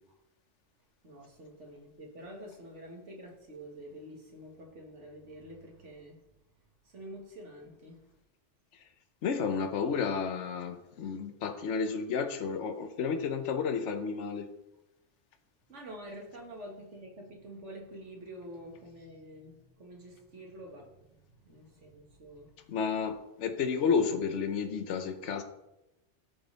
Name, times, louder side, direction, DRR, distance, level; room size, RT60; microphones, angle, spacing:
voice 1, 1.0-6.2 6.8-8.0 15.7-22.7, right 1 dB, 75° right, 2.1 m, -47 dB
voice 2, 9.2-14.5 22.7-25.4, left 6 dB, 75° left, 1.2 m, -31 dB
13.5 x 5.3 x 4.0 m
omnidirectional pair, 1.2 m